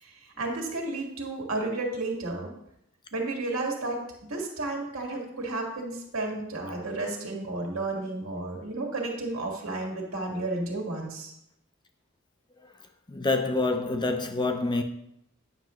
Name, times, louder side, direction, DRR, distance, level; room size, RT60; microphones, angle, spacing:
voice 1, 0.4-2.5 3.1-4.0 4.3-11.3, right 2 dB, 80° right, 1.8 m, -32 dB
voice 2, 13.1-14.8, left 3 dB, 20° left, 0.6 m, -26 dB
9.4 x 6.5 x 3.1 m
head